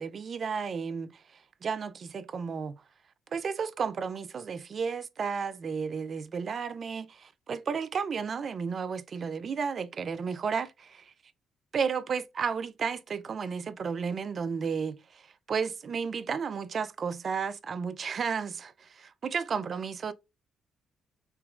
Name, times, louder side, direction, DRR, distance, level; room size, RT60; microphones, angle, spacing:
voice 1, 0.0-2.8 3.3-11.1 11.7-20.1, right 6 dB, 50° right, 0.4 m, -33 dB
3.5 x 2.9 x 2.4 m
cardioid pair, 90°, 0 cm